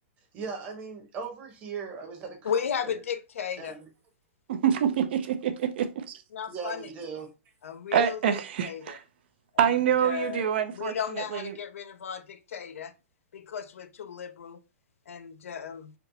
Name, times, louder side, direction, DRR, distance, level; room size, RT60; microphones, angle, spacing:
voice 1, 0.3-3.0 3.6-3.8 6.5-7.3, right 5 dB, 20° right, 1.0 m, -39 dB
voice 2, 2.4-3.8 6.3-6.9 7.6-8.2 8.6-9.0 10.0-12.9 13.3-14.6 15.1-15.9, left 7 dB, 85° left, 0.6 m, -34 dB
voice 3, 4.5-6.2 7.9-9.0 9.6-11.5, right 9 dB, 50° right, 0.6 m, -26 dB
4.4 x 2.1 x 3.9 m
hypercardioid pair, 165°, 7 cm